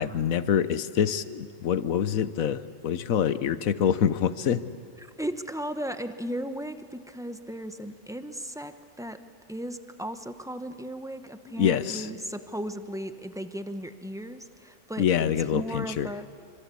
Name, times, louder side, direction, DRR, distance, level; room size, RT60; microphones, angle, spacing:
voice 1, 0.0-4.6 11.6-12.1 15.0-16.1, left 8 dB, 70° left, 14 dB, 1.2 m, -25 dB
voice 2, 5.0-9.2 9.5-16.3, right 1 dB, 5° right, 9 dB, 0.8 m, -36 dB
26.5 x 25.5 x 8.4 m, 2.2 s
omnidirectional pair, 1.5 m